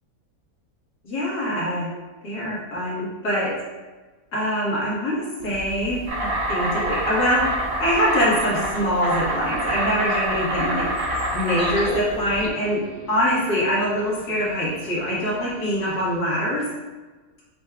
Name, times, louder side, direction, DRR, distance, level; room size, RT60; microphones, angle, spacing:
voice 1, 1.0-1.9 2.2-3.5 4.3-7.4 7.8-10.9 11.3-12.8 13.1-16.6, equal, 85° left, -6 dB, 2.1 m, -24 dB
sound 1, 5.4-12.5, left 2 dB, 60° left, 0.7 m, -39 dB
Insect, 6.1-16.1, right 1 dB, 65° right, 1.3 m, -26 dB
6.2 x 2.4 x 3.4 m, 1.3 s
omnidirectional pair, 1.7 m